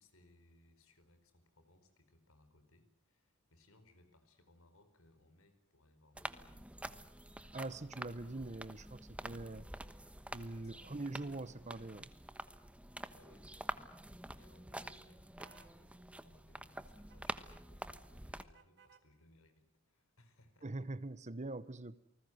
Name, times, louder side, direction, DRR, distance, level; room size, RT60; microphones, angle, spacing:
voice 1, 0.0-6.7 10.5-10.9 13.1-13.8 14.4-20.7, left 1 dB, 75° left, 9 dB, 4.7 m, -67 dB
sound 1, 6.1-18.4, right 1 dB, 5° right, 1.1 m, -48 dB
voice 2, 7.5-9.7 10.3-12.1 20.6-22.0, right 2 dB, 35° right, 16 dB, 1.0 m, -43 dB
sound 2, 15.4-15.8 17.1-17.5 18.5-19.1, right 7 dB, 55° right, 2.0 m, -64 dB
28.5 x 20.0 x 7.9 m, 0.72 s
head